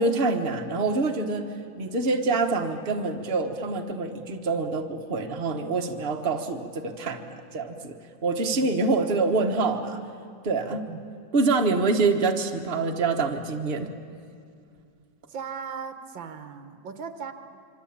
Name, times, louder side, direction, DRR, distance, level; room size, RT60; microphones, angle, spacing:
voice 1, 0.0-1.5 1.8-7.9 8.2-10.0 10.4-10.8 11.3-13.9, right 3 dB, 35° right, 4 dB, 1.5 m, -26 dB
voice 2, 15.3-17.3, right 6 dB, 85° right, 8 dB, 2.1 m, -37 dB
26.0 x 25.0 x 8.7 m, 2.4 s
omnidirectional pair, 2.0 m